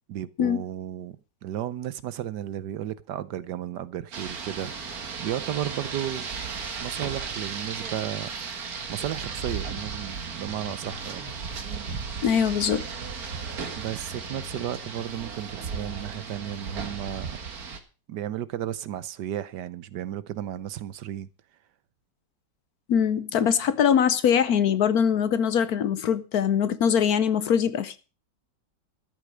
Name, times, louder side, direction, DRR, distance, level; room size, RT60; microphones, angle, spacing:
voice 1, 0.1-1.2 1.4-6.3 6.8-8.3 8.9-11.2 13.8-17.4 18.1-21.3, right 11 dB, 75° right, 1.4 m, -34 dB
Rain, 4.1-17.8, right 5 dB, 55° right, 1.9 m, -35 dB
voice 2, 12.2-12.8 22.9-28.0, left 8 dB, 65° left, 1.2 m, -22 dB
13.0 x 8.3 x 6.2 m
omnidirectional pair, 1.9 m